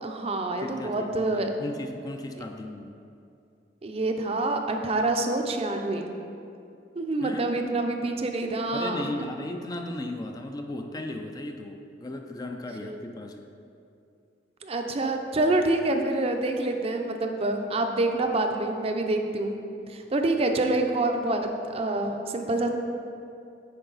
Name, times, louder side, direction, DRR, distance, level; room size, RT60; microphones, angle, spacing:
voice 1, 0.0-1.5 3.8-6.1 7.0-9.1 12.8-13.0 14.6-19.5 19.9-22.7, right 2 dB, 35° right, 4 dB, 0.5 m, -27 dB
voice 2, 0.6-3.0 7.2-7.5 8.7-13.5, left 1 dB, 20° left, 5 dB, 0.3 m, -36 dB
9.8 x 4.5 x 3.9 m, 2.6 s
head